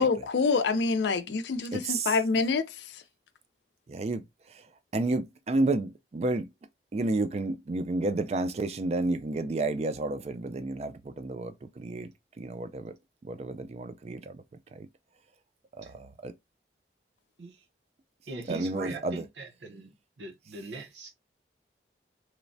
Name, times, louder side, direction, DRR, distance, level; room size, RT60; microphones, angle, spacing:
voice 1, 0.0-3.0, left 4 dB, 75° left, 0.4 m, -26 dB
voice 2, 1.7-2.1 3.9-4.2 4.9-6.5 6.9-12.1 12.4-12.9 13.2-14.4 14.8-14.9 15.8-16.3 18.5-19.2, right 2 dB, 35° right, 0.3 m, -31 dB
voice 3, 18.3-21.2, right 2 dB, 80° right, 0.7 m, -41 dB
3.1 x 2.1 x 2.5 m
head